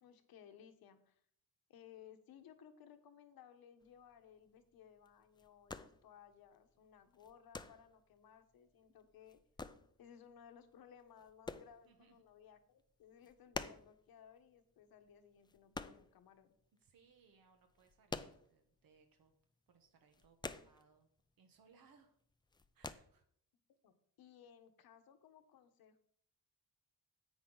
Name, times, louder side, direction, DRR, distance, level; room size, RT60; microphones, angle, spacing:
voice 1, 0.0-1.2 1.7-9.4 10.0-16.5 23.7-26.0, left 8 dB, 85° left, 8 dB, 1.2 m, -61 dB
sound 1, 3.8-16.8 17.0-19.0 19.2-19.4 19.7-21.3 21.5-22.0 22.3-22.9, left 3 dB, 15° left, 0.4 m, -49 dB
voice 2, 11.8-12.2 16.8-19.4 19.7-21.1 21.4-22.2 22.7-23.3, right 5 dB, 75° right, 5 dB, 1.2 m, -69 dB
10.0 x 8.3 x 3.9 m, 0.63 s
cardioid pair, 140°, 35 cm